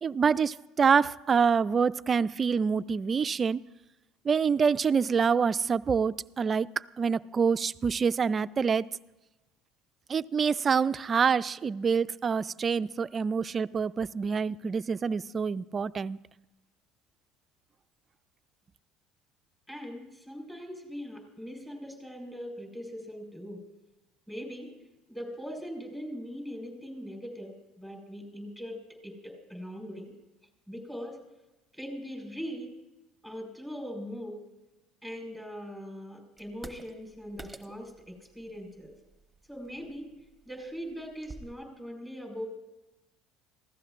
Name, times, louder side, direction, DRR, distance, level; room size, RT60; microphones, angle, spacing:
voice 1, 0.0-3.6 4.3-8.9 10.1-16.2, right 6 dB, 35° right, 16 dB, 0.4 m, -26 dB
voice 2, 19.7-23.6 24.3-24.7 25.1-30.1 30.7-31.2 31.7-32.7 33.2-34.4 35.0-38.9 39.5-40.1 40.4-42.5, equal, 10° left, 0 dB, 4.9 m, -41 dB
sound 1, 36.4-41.5, right 2 dB, 10° right, 1.2 m, -50 dB
25.5 x 15.5 x 2.5 m, 1.0 s
hypercardioid pair, 75°, 0 cm